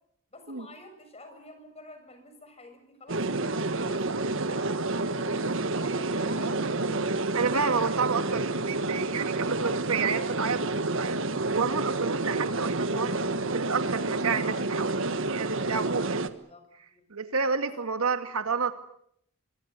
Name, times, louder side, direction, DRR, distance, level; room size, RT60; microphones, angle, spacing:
voice 1, 0.3-4.7 5.1-7.1 16.2-16.6 16.9-17.1 17.4-17.9, left 1 dB, 30° left, 7 dB, 6.8 m, -50 dB
sound 1, 3.1-16.3, right 2 dB, 65° right, 1.5 m, -29 dB
voice 2, 7.3-13.2 13.5-16.3 17.1-18.7, right 5 dB, 90° right, 9 dB, 2.2 m, -30 dB
25.5 x 23.0 x 8.3 m, 0.73 s
head